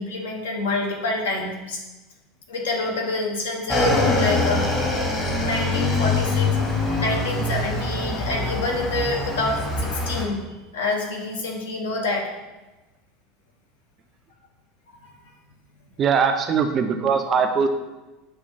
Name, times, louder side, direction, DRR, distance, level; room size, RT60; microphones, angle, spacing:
voice 1, 0.0-1.8 2.5-4.7 5.4-6.5 7.0-10.4 10.7-12.3 14.9-15.0, left 2 dB, 70° left, 0 dB, 0.7 m, -27 dB
Motorcycle / Engine, 3.7-10.3, left 2 dB, 30° left, 1.1 m, -24 dB
voice 2, 16.0-17.7, right 6 dB, 35° right, 7 dB, 0.4 m, -21 dB
6.5 x 2.4 x 2.6 m, 1.1 s
figure-of-eight pair, 75°, 0 cm